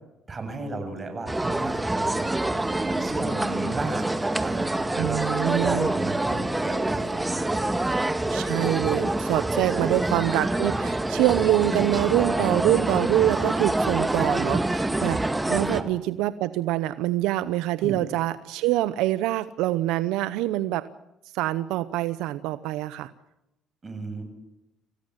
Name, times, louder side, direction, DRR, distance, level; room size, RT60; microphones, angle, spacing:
voice 1, 0.3-8.1 9.7-10.0 12.1-12.7 15.7-15.8 17.8-18.0 23.8-24.2, right 3 dB, 30° right, 7 dB, 7.7 m, -34 dB
sound 1, 1.3-15.8, right 2 dB, 10° right, 1.9 m, -26 dB
voice 2, 5.0-5.9 8.3-20.9 21.3-23.1, right 15 dB, 85° right, 14 dB, 0.8 m, -25 dB
27.5 x 16.5 x 7.4 m, 0.90 s
supercardioid pair, 80°, 0 cm